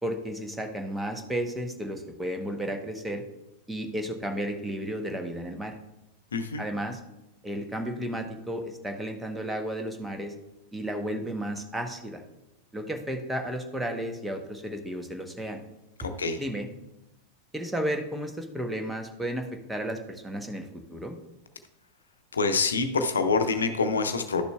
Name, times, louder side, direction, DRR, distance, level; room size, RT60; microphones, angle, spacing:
voice 1, 0.0-3.2 3.7-5.7 6.6-7.0 7.4-10.3 10.7-12.2 12.7-15.6 16.0-16.1 16.4-16.7 17.5-21.2, right 1 dB, 5° right, 4 dB, 0.9 m, -33 dB
voice 2, 6.3-6.6 16.0-16.4 22.3-24.4, left 4 dB, 70° left, 8 dB, 0.7 m, -26 dB
11.5 x 6.7 x 2.3 m, 0.93 s
figure-of-eight pair, 90°, 0 cm